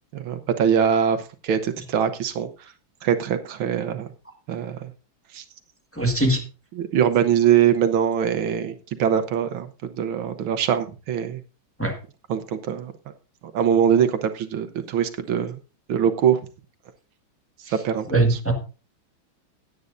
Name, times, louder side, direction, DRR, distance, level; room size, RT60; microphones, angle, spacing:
voice 1, 0.1-2.5 3.0-4.1 4.5-4.9 5.3-5.4 6.8-11.4 12.3-12.9 13.5-15.6 15.9-16.4 17.8-18.4, right 8 dB, 80° right, 9 dB, 1.7 m, -22 dB
voice 2, 5.9-6.4 11.8-12.0 18.1-18.5, right 2 dB, 5° left, 2 dB, 1.4 m, -21 dB
16.5 x 9.6 x 2.6 m, 0.32 s
omnidirectional pair, 2.2 m